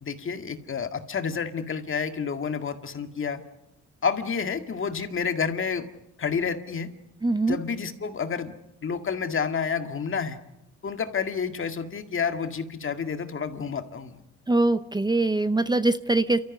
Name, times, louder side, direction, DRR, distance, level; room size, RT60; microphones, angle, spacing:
voice 1, 0.0-3.4 4.0-5.9 6.2-6.9 7.5-8.5 8.8-10.4 10.8-14.2, left 6 dB, 45° left, 7 dB, 2.1 m, -29 dB
voice 2, 7.2-7.6 14.5-16.4, right 2 dB, 15° right, 12 dB, 0.8 m, -22 dB
29.0 x 14.0 x 9.4 m, 0.88 s
cardioid pair, 90°, 30 cm